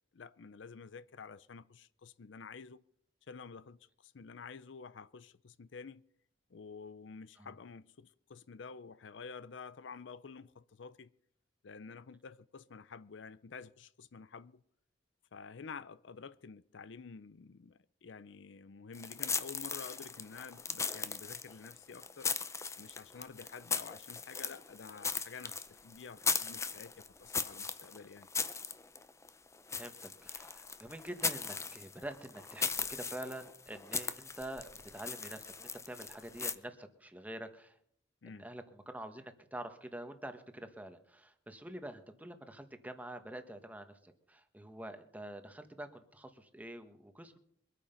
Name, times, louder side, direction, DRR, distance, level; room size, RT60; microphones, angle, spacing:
voice 1, 0.1-2.8 3.3-6.0 6.5-11.1 11.6-14.6 15.3-22.3 22.8-28.3 38.2-38.5, left 5 dB, 75° left, 0.6 m, -50 dB
sound 1, 18.9-36.5, left 5 dB, 15° left, 0.6 m, -38 dB
voice 2, 29.7-37.8 38.3-47.4, right 1 dB, 10° right, 1.3 m, -46 dB
23.0 x 9.0 x 5.7 m
head